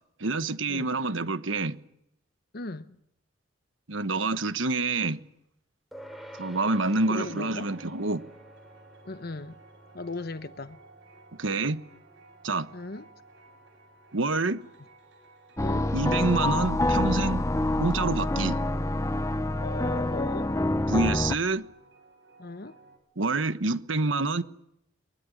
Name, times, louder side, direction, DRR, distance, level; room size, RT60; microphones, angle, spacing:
voice 1, 0.2-1.8 3.9-5.2 6.3-8.2 11.4-11.8 12.4-12.7 14.1-14.6 15.9-17.5 17.8-18.6 20.9-21.6 23.2-24.4, right 3 dB, 80° right, 1.3 m, -27 dB
voice 2, 2.5-3.0 7.1-7.7 9.0-9.6 9.9-10.8 12.7-13.1 15.6-15.9 19.6-20.5 22.4-22.8, left 2 dB, 55° left, 1.0 m, -37 dB
sound 1, 5.9-15.6, equal, ahead, 4.3 m, -51 dB
sound 2, 7.4-23.0, right 3 dB, 65° right, 7.8 m, -56 dB
Haymaking on Jupiter, 15.6-21.3, left 1 dB, 15° left, 0.9 m, -26 dB
23.0 x 21.0 x 9.8 m
head